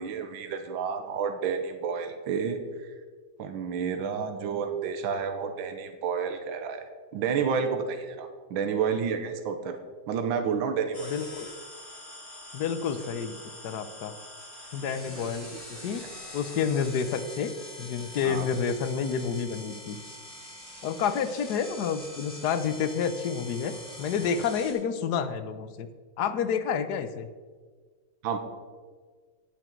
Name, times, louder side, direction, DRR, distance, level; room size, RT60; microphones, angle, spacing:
voice 1, 0.0-2.9 3.4-6.8 7.1-9.8 10.1-11.1 13.0-13.1 15.0-15.9 18.2-18.5 28.2-28.4, right 6 dB, 80° right, 7 dB, 1.7 m, -30 dB
sound 1, 10.9-24.7, left 1 dB, 10° left, 3.7 m, -44 dB
voice 2, 11.1-11.5 12.5-13.4 13.6-14.1 14.7-15.5 15.8-16.0 16.3-17.5 17.8-20.0 20.8-25.9 26.2-27.3, left 7 dB, 65° left, 11 dB, 1.1 m, -29 dB
18.5 x 6.2 x 4.5 m, 1.5 s
omnidirectional pair, 2.2 m